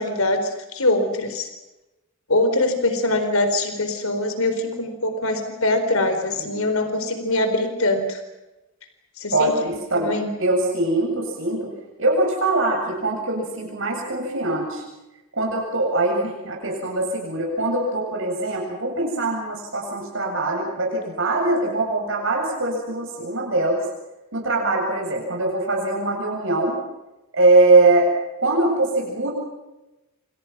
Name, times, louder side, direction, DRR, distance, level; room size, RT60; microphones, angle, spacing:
voice 1, 0.0-1.5 2.3-8.2 9.2-9.6 10.0-10.3, left 2 dB, 80° left, 7 dB, 4.2 m, -23 dB
voice 2, 9.3-10.1 10.4-11.7 12.0-14.8 15.3-23.8 24.3-26.8 27.3-28.1 28.4-29.3, right 2 dB, 60° right, -1 dB, 7.7 m, -22 dB
29.0 x 27.5 x 6.1 m, 1.0 s
head